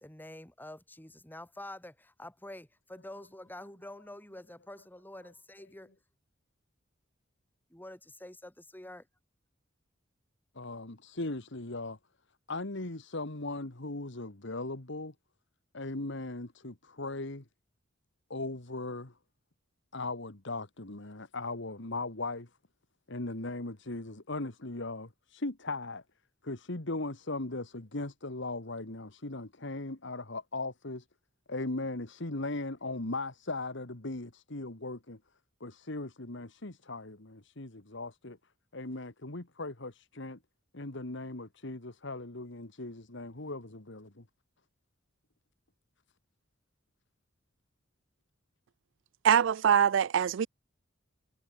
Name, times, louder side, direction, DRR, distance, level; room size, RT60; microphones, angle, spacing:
voice 1, 0.0-5.9 7.7-9.1, left 1 dB, 10° left, 3.0 m, -47 dB
voice 2, 10.6-12.0 12.5-15.1 15.7-17.5 18.3-19.1 19.9-22.5 23.1-26.0 26.4-31.1 31.5-35.2 35.6-38.4 38.7-40.4 40.7-44.3, left 2 dB, 65° left, 2.1 m, -38 dB
voice 3, 49.2-50.5, right 8 dB, 65° right, 0.4 m, -23 dB
head